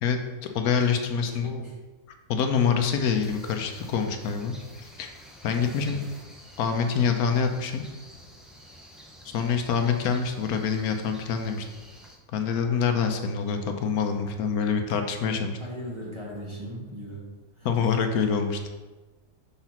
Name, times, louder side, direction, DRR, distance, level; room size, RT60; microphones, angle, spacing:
voice 1, 0.0-1.5 2.3-5.1 5.4-6.0 6.6-7.8 9.3-11.7 12.3-15.6 17.6-18.6, left 6 dB, 80° left, 6 dB, 1.2 m, -26 dB
voice 2, 1.2-1.8 5.5-6.1 15.6-17.3 17.5-17.7, equal, 20° right, -4 dB, 1.2 m, -39 dB
sound 1, 2.8-12.2, equal, ahead, 0.4 m, -49 dB
5.7 x 4.0 x 5.8 m, 1.2 s
omnidirectional pair, 1.6 m